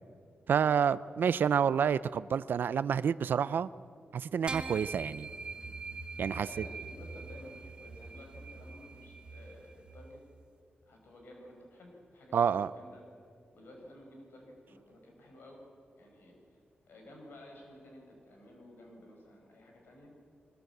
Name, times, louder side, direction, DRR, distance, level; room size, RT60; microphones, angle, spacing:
voice 1, 0.5-3.7 4.1-5.3 6.2-6.5 12.3-12.7, right 7 dB, 70° right, 16 dB, 0.5 m, -28 dB
sound 1, 4.5-10.1, right 3 dB, 25° right, 1.5 m, -43 dB
voice 2, 6.1-10.2 10.8-13.0 13.5-15.6 15.9-16.4 16.9-20.1, left 1 dB, 80° left, 1 dB, 5.0 m, -53 dB
23.5 x 20.0 x 8.0 m, 2.3 s
wide cardioid pair, 145°, 3 cm